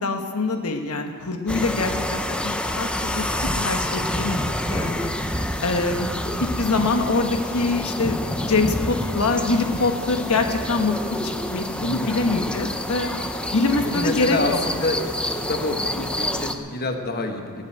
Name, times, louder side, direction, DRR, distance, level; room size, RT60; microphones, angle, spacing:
voice 1, 0.0-5.1 5.6-6.1 6.4-13.1 13.5-14.4, left 3 dB, 75° left, 5 dB, 1.1 m, -24 dB
sound 1, 1.5-16.6, left 1 dB, 5° left, 0.7 m, -28 dB
voice 2, 11.8-12.3 13.7-15.0 15.3-17.6, left 2 dB, 45° left, 4 dB, 1.3 m, -28 dB
17.5 x 8.1 x 9.0 m, 2.1 s
head